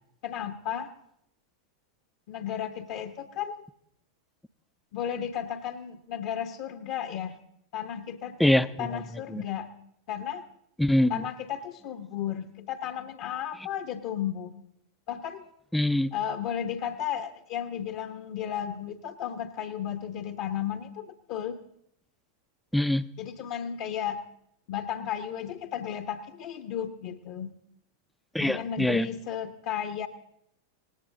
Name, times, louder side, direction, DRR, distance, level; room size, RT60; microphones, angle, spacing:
voice 1, 0.2-0.9 2.3-3.6 4.9-7.4 7.7-9.7 10.1-10.4 11.1-14.5 15.1-15.4 16.1-21.6 23.2-24.2 24.7-27.5 28.4-30.1, left 9 dB, 45° left, 6 dB, 0.9 m, -34 dB
voice 2, 8.4-8.9 9.3-9.4 10.8-11.2 15.7-16.1 22.7-23.0 28.3-29.1, left 1 dB, 5° left, 14 dB, 0.5 m, -24 dB
18.5 x 16.5 x 3.8 m, 0.76 s
figure-of-eight pair, 90°, 0 cm